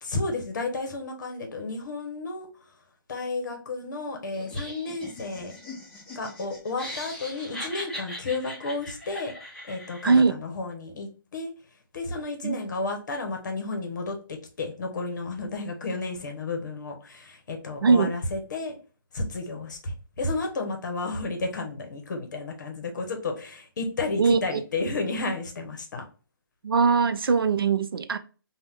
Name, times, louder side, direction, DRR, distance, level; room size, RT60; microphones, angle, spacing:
voice 1, 0.0-2.5 3.1-5.5 6.2-9.3 9.7-11.5 11.9-18.8 19.1-26.0, left 3 dB, 55° left, 0.9 m, -32 dB
Laughter, 4.3-10.2, left 1 dB, 5° left, 0.7 m, -40 dB
voice 2, 17.8-18.2 24.2-24.9 26.6-28.2, right 5 dB, 85° right, 0.4 m, -21 dB
2.6 x 2.2 x 3.4 m
hypercardioid pair, 150°, 12 cm